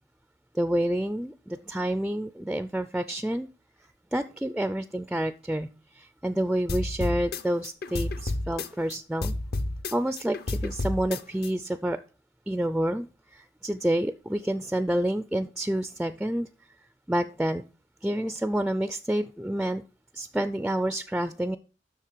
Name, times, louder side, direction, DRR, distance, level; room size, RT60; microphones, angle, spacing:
voice 1, 0.5-3.5 4.1-5.7 6.0-9.3 9.9-12.0 12.5-16.5 17.1-17.6 18.0-19.8 20.1-21.6, right 1 dB, 5° right, 13 dB, 0.3 m, -28 dB
sound 1, 6.7-9.0 9.2-11.5, left 2 dB, 60° left, 0.7 m, -30 dB
7.5 x 6.1 x 6.6 m, 0.36 s
head